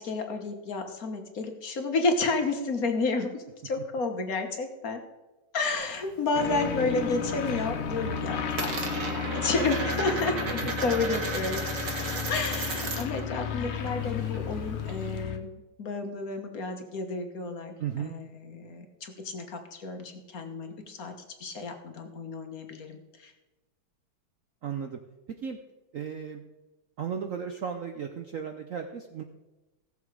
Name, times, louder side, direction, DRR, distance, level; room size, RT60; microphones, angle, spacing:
voice 1, 0.0-5.0 5.5-11.6 12.3-21.1 21.4-23.3, left 3 dB, 50° left, 5 dB, 1.5 m, -31 dB
Coin (dropping), 5.7-6.9 7.2-7.7 7.9-13.2 13.5-15.2, right 3 dB, 45° right, 1.6 m, -35 dB
sound 1, 6.3-15.4, left 6 dB, 80° left, 1.9 m, -33 dB
voice 2, 17.8-18.2 24.6-25.0 25.4-25.6 25.9-26.4 27.0-29.2, right 7 dB, 70° right, 6 dB, 0.7 m, -35 dB
16.0 x 7.0 x 4.9 m, 1.1 s
omnidirectional pair, 2.3 m